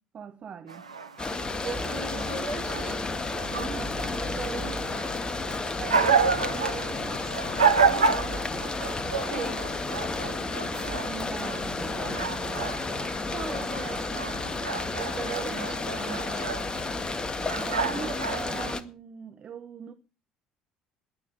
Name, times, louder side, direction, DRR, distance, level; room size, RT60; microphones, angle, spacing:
voice 1, 0.1-0.9 3.5-4.0 7.9-8.5 10.3-12.8 17.5-19.9, right 7 dB, 40° right, 1.3 m, -42 dB
sound 1, 0.7-18.7, right 5 dB, 85° right, 0.9 m, -30 dB
sound 2, 1.2-18.8, left 3 dB, 25° left, 2.0 m, -32 dB
voice 2, 1.6-3.1 3.4-5.1 5.6-7.4 9.2-9.7 10.1-10.3 13.3-14.4 14.9-16.5, right 4 dB, 65° right, 6.0 m, -39 dB
20.5 x 9.5 x 5.4 m
figure-of-eight pair, 55°, 3 cm